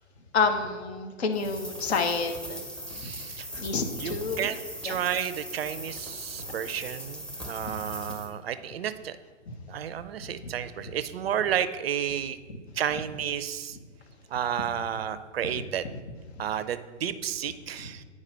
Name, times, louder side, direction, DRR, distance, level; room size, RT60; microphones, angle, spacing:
voice 1, 0.3-2.6 3.0-3.1 3.5-4.5 4.8-5.0 10.4-10.5 15.4-15.5, left 4 dB, 60° left, 6 dB, 1.3 m, -28 dB
sound 1, 1.3-8.3, equal, 5° left, 0.7 m, -40 dB
voice 2, 2.9-3.5 4.0-9.2 9.7-12.4 12.8-13.8 14.3-15.8 16.4-18.0, right 9 dB, 55° right, 13 dB, 0.5 m, -32 dB
9.5 x 4.8 x 4.3 m, 1.4 s
figure-of-eight pair, 120°, 37 cm